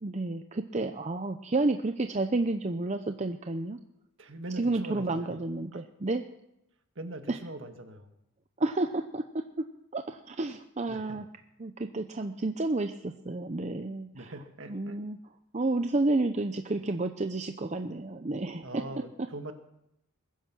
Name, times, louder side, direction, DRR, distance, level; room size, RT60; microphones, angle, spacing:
voice 1, 0.0-3.8 4.6-6.2 7.3-7.4 8.6-9.2 9.6-9.7 9.9-11.2 11.6-14.2 14.7-15.2 15.5-18.8, right 2 dB, 30° right, 7 dB, 0.6 m, -30 dB
voice 2, 4.2-5.4 5.7-5.8 7.0-8.1 10.9-11.2 14.1-15.0 18.6-19.5, right 1 dB, 55° right, 6 dB, 1.7 m, -41 dB
21.5 x 10.5 x 6.2 m, 0.84 s
head